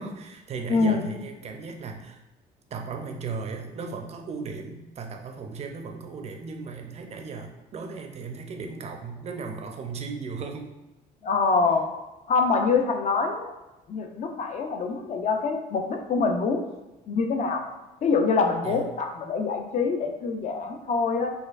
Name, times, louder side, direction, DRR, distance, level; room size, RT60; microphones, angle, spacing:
voice 1, 0.0-2.2 2.7-10.7 18.6-18.9, right 4 dB, 40° right, 4 dB, 0.5 m, -36 dB
voice 2, 0.7-1.1 11.2-11.9 12.3-13.5 13.9-16.6 17.1-17.7 18.0-21.3, left 4 dB, 45° left, 4 dB, 0.5 m, -25 dB
4.2 x 2.4 x 2.4 m, 1.0 s
cardioid pair, 110°, 17 cm